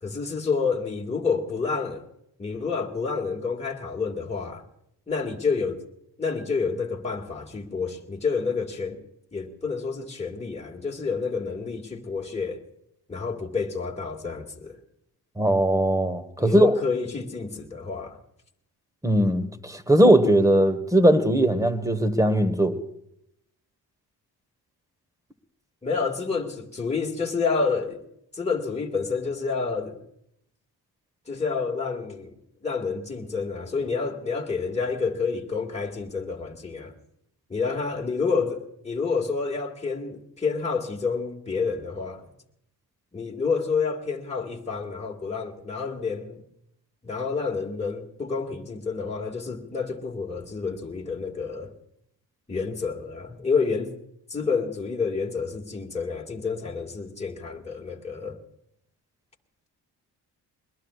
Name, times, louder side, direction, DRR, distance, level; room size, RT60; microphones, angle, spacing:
voice 1, 0.0-2.1 2.4-4.6 5.1-5.8 6.2-9.0 9.3-12.6 13.1-14.8 16.4-18.2 25.8-28.0 28.3-30.0 31.3-32.3 32.6-36.9 37.5-42.3 43.1-46.4 47.0-51.7 52.5-54.0 54.3-58.4, left 5 dB, 15° left, 2.0 m, -29 dB
voice 2, 15.4-16.7 19.0-22.7, right 1 dB, 10° right, 1.3 m, -20 dB
21.5 x 20.5 x 2.4 m
cardioid pair, 60°, 42 cm